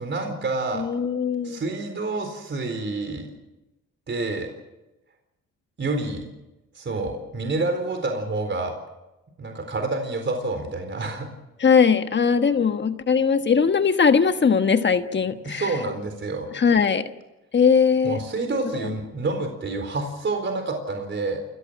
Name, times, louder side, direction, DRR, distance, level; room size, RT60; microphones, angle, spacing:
voice 1, 0.0-0.9 1.4-3.3 4.1-4.5 5.8-6.3 6.7-8.7 9.4-11.3 15.4-16.5 18.0-21.4, right 3 dB, 40° right, 5 dB, 4.1 m, -28 dB
voice 2, 0.7-1.6 11.6-15.7 16.5-17.0 17.5-18.2 18.8-18.9, left 6 dB, 35° left, 9 dB, 1.4 m, -20 dB
29.0 x 15.0 x 7.5 m, 0.99 s
cardioid pair, 90°, 30 cm